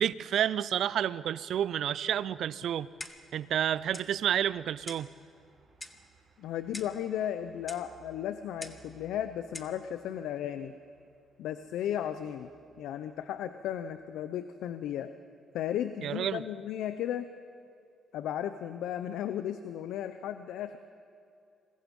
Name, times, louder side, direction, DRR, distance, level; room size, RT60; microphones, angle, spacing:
voice 1, 0.0-2.9 3.3-5.1 16.0-16.4, right 10 dB, 70° right, 18 dB, 0.5 m, -30 dB
sound 1, 1.3-13.8, right 4 dB, 50° right, 3.5 m, -64 dB
Clock, 3.0-3.4 3.9-4.1 4.9-5.1 5.8-6.1 6.7-7.0 7.7-7.9 8.6-8.9 9.5-9.8, left 2 dB, 15° left, 1.4 m, -44 dB
voice 2, 6.4-10.7 11.4-12.5 12.8-15.1 15.5-17.3 18.1-20.8, left 10 dB, 85° left, 11 dB, 0.7 m, -35 dB
27.5 x 21.0 x 5.4 m, 2.5 s
cardioid pair, 90°, 0 cm